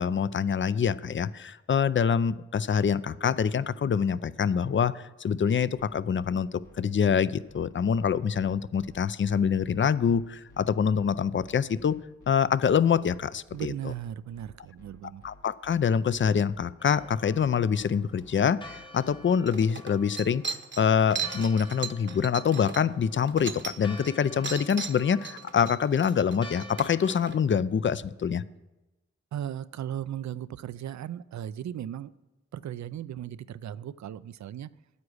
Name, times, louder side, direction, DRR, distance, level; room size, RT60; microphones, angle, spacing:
voice 1, 0.0-12.0 12.3-13.7 15.2-20.4 20.8-28.4, left 7 dB, 40° left, 17 dB, 0.5 m, -25 dB
sound 1, 5.8-19.3, left 2 dB, 80° left, 1.7 m, -55 dB
voice 2, 13.5-15.2 29.3-32.1 32.5-34.7, right 10 dB, 70° right, 17 dB, 0.5 m, -36 dB
Church bell, 16.8-27.4, left 1 dB, 15° left, 1.0 m, -49 dB
sound 2, 19.0-19.1 19.5-24.1 24.4-27.4, right 6 dB, 40° right, 0.9 m, -37 dB
9.6 x 8.5 x 6.4 m, 1.0 s
cardioid pair, 45°, 29 cm